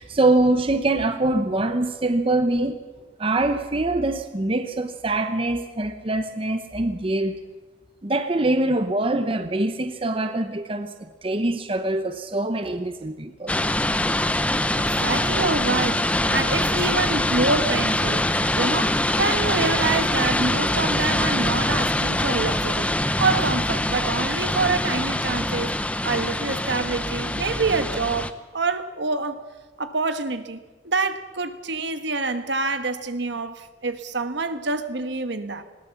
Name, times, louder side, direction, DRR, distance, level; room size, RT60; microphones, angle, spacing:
voice 1, 0.0-2.8 3.2-7.4 8.0-10.9 11.2-13.5, right 2 dB, 30° right, 0.8 m, -24 dB
sound 1, 13.5-28.3, left 1 dB, 5° left, 0.7 m, -24 dB
voice 2, 14.8-22.9 23.2-25.7 26.0-29.4 29.8-33.5 33.8-35.6, right 3 dB, 65° right, 1.3 m, -26 dB
20.0 x 18.0 x 7.1 m
head